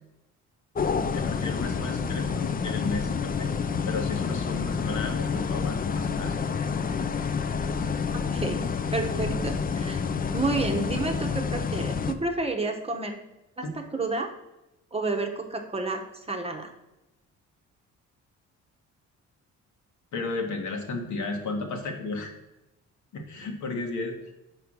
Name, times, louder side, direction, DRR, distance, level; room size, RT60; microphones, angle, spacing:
sound 1, 0.7-12.1, left 5 dB, 30° left, 0.5 m, -28 dB
voice 1, 1.1-3.5 3.8-6.5 9.2-9.4 13.6-13.7 20.1-22.3 23.1-24.3, left 3 dB, 75° left, 3 dB, 1.4 m, -34 dB
voice 2, 8.9-10.0 10.3-13.2 13.7-14.3 14.9-16.7, right 3 dB, 20° right, 4 dB, 0.9 m, -30 dB
5.1 x 4.6 x 6.1 m, 0.96 s
cardioid pair, 90°, 30 cm